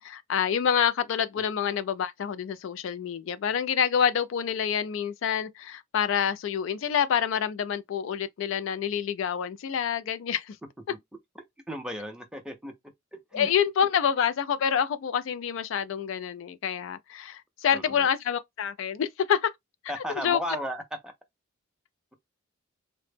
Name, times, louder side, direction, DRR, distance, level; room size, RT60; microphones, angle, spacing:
voice 1, 0.0-10.6 13.3-19.5 20.0-20.4, left 8 dB, 65° left, 0.3 m, -27 dB
voice 2, 11.7-12.7 13.1-13.5 17.7-18.1 19.9-20.8, equal, 5° right, 0.4 m, -35 dB
2.1 x 2.0 x 3.1 m
head